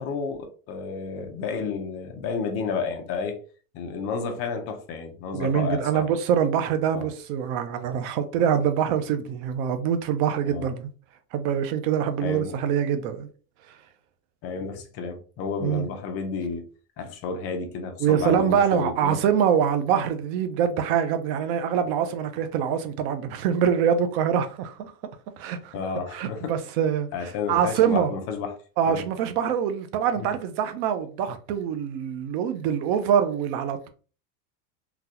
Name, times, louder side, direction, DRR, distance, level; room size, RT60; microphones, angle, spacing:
voice 1, 0.0-3.4 3.7-6.1 6.9-7.1 10.4-10.7 12.2-12.6 14.4-16.6 17.0-19.2 25.7-26.5 27.1-28.6 28.9-29.0 30.2-30.3, left 5 dB, 30° left, 0.6 m, -31 dB
voice 2, 5.3-10.9 11.3-13.3 15.6-15.9 18.0-24.9 25.4-25.7 26.1-28.1 28.8-33.9, right 8 dB, 40° right, 0.5 m, -24 dB
3.9 x 2.3 x 2.8 m
supercardioid pair, 155°, 47 cm